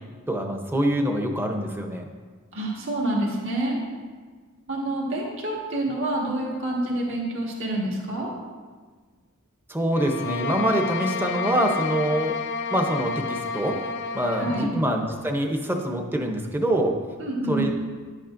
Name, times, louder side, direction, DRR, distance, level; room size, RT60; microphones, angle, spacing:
voice 1, 0.3-2.1 9.7-12.3 12.7-13.8 14.1-16.9 17.5-17.7, right 1 dB, 10° right, 3 dB, 0.7 m, -25 dB
voice 2, 2.5-3.8 4.7-8.3 14.4-14.8 17.2-17.7, right 1 dB, 60° right, -4 dB, 1.7 m, -27 dB
sound 1, 9.9-14.8, left 4 dB, 55° left, 0.4 m, -30 dB
11.0 x 8.4 x 2.6 m, 1.5 s
head